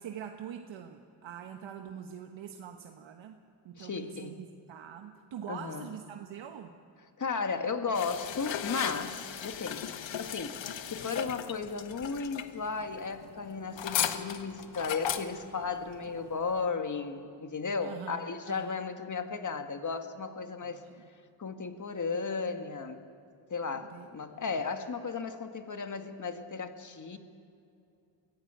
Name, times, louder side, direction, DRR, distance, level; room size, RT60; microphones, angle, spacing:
voice 1, 0.0-3.4 3.6-6.8 10.1-10.2 17.8-18.8 20.6-21.1 23.8-24.5, right 8 dB, 80° right, 5 dB, 1.3 m, -44 dB
voice 2, 3.8-4.4 5.5-5.9 7.2-10.6 10.9-20.8 21.4-23.0 23.5-27.2, left 5 dB, 40° left, 7 dB, 1.9 m, -35 dB
sound 1, 7.9-16.7, left 9 dB, 75° left, 1.3 m, -37 dB
23.0 x 16.0 x 8.3 m, 2.6 s
cardioid pair, 75°, 45 cm